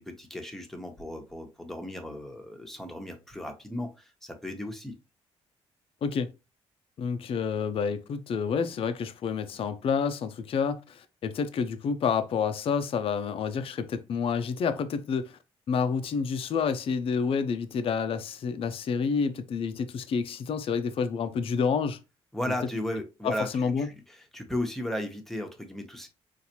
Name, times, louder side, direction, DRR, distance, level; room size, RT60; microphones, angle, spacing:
voice 1, 0.0-4.9 22.3-26.1, left 1 dB, 5° left, 0.9 m, -35 dB
voice 2, 7.0-15.4 15.7-22.0 23.2-23.9, left 6 dB, 55° left, 0.5 m, -29 dB
4.0 x 2.5 x 2.8 m
supercardioid pair, 75°, 11 cm